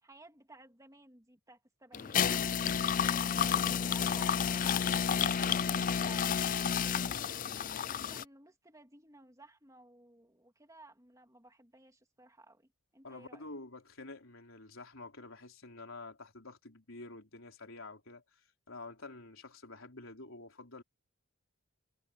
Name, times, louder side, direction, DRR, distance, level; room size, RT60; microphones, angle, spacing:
voice 1, 0.0-2.7 3.4-7.2 7.8-13.4, right 2 dB, 15° right, 3.2 m, -57 dB
sound 1, 1.9-8.2, left 7 dB, 35° left, 0.4 m, -30 dB
voice 2, 13.0-20.8, left 2 dB, 65° left, 4.2 m, -49 dB
head